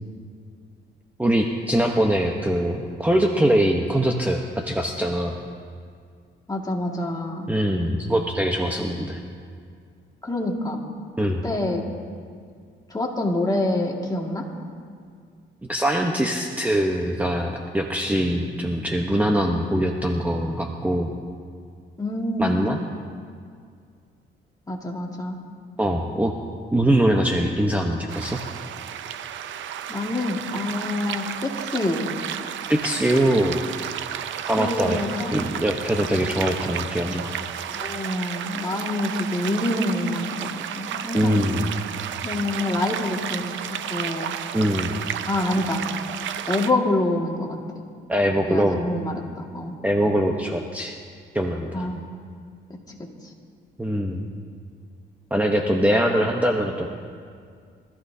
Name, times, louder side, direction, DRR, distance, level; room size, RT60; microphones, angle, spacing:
voice 1, 1.2-5.4 7.5-9.2 11.2-11.4 15.7-21.1 22.4-22.8 25.8-26.3 26.7-28.4 32.7-33.7 34.5-35.0 35.3-37.3 41.1-41.7 44.5-45.0 48.1-48.8 49.7-50.9 51.3-51.9 53.8-54.2 55.3-56.9, right 1 dB, 10° right, 1 dB, 1.1 m, -22 dB
voice 2, 6.5-7.5 10.2-10.8 11.4-11.9 12.9-14.4 22.0-22.7 24.7-25.4 29.9-32.1 34.6-35.4 37.7-41.4 42.2-44.3 45.3-45.9 46.4-47.6 48.5-49.7 51.7-52.1 52.9-53.0, left 2 dB, 20° left, -1 dB, 2.1 m, -26 dB
sound 1, 28.1-46.7, right 9 dB, 70° right, 0.6 m, -32 dB
24.0 x 14.0 x 2.8 m, 2.1 s
cardioid pair, 90°, 20 cm